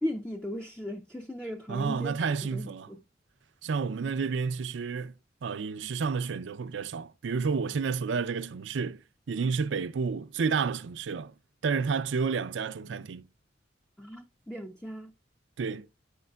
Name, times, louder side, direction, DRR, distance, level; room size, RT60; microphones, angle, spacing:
voice 1, 0.0-2.2 2.5-3.0 14.0-15.1, equal, 5° left, 0.4 m, -37 dB
voice 2, 1.7-2.9 3.6-5.1 5.4-9.0 9.3-11.3 11.6-13.3 15.6-15.9, right 5 dB, 70° right, 0.4 m, -30 dB
8.5 x 5.3 x 2.3 m
head